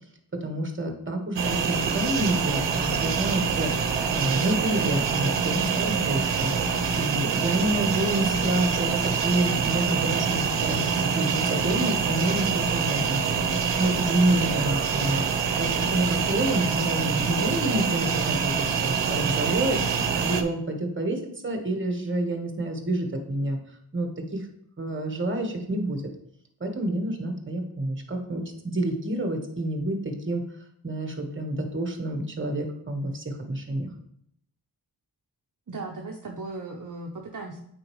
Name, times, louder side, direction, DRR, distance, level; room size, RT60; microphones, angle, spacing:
voice 1, 0.4-6.5 7.0-15.2 15.6-18.5 18.8-19.8 20.2-23.6 23.9-24.5 24.8-26.0 26.6-30.4 30.8-33.9, right 1 dB, 30° right, 3 dB, 1.3 m, -28 dB
sound 1, 1.4-20.4, right 6 dB, 90° right, 0.8 m, -25 dB
voice 2, 35.7-37.6, right 3 dB, 50° right, 1 dB, 0.8 m, -37 dB
8.7 x 4.2 x 3.1 m, 0.72 s
wide cardioid pair, 75°, 42 cm